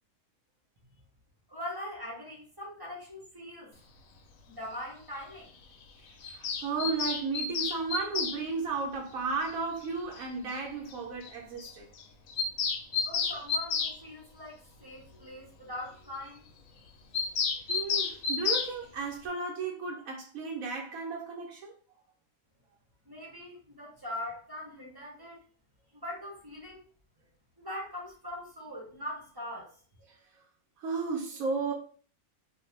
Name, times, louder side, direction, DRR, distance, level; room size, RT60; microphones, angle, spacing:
voice 1, 1.5-3.7 4.5-5.5 13.0-16.4 23.1-25.4 25.9-26.9 27.6-29.7, left 1 dB, 25° right, 0.5 m, -41 dB
Bird vocalization bird call bird song, 6.2-8.4 9.8-9.9 10.2-10.3 10.5-10.6 10.9-11.0 11.2-11.3 11.6-11.7 12.0-14.0 17.1-18.7, left 6 dB, 85° left, 1.0 m, -31 dB
voice 2, 6.3-11.9 17.7-21.7 30.1-30.2 30.8-31.7, right 4 dB, 85° right, 1.1 m, -34 dB
2.6 x 2.2 x 3.1 m
omnidirectional pair, 1.4 m